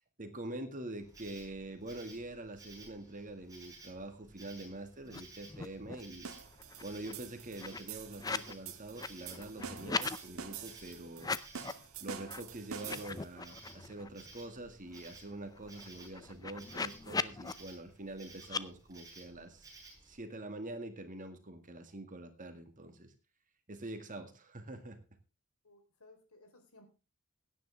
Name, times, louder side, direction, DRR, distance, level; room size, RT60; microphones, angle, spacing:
voice 1, 0.2-6.3 6.8-11.3 12.0-19.7 20.1-23.1 23.7-25.0, right 1 dB, 35° right, 7 dB, 2.0 m, -45 dB
Insect, 1.0-20.2, right 3 dB, 15° right, 5.1 m, -56 dB
sound 1, 5.1-5.2 5.5-6.1 6.5-8.5 8.8-10.2 11.1-11.9 12.3-12.4 12.8-14.1 14.5-14.6 14.8-17.5 18.4-18.6, left 4 dB, 15° left, 0.5 m, -40 dB
sound 2, 6.2-13.3, right 7 dB, 65° right, 1.7 m, -47 dB
voice 2, 25.6-26.8, left 2 dB, 70° left, 6 dB, 3.9 m, -60 dB
17.0 x 10.0 x 3.5 m, 0.31 s
head